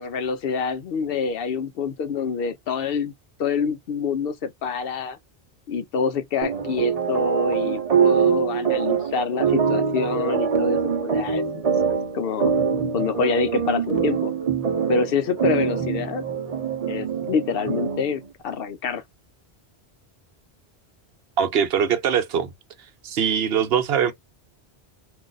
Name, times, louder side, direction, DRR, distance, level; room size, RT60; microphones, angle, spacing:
voice 1, 0.0-3.1 3.4-5.2 5.7-11.7 12.1-12.5 12.9-14.3 14.9-16.2 16.9-19.0, left 5 dB, 65° left, 0.7 m, -26 dB
sound 1, 6.4-18.2, right 7 dB, 40° right, 0.8 m, -24 dB
voice 2, 21.4-22.5 23.0-24.1, right 8 dB, 70° right, 0.9 m, -22 dB
2.6 x 2.4 x 3.8 m
omnidirectional pair, 1.1 m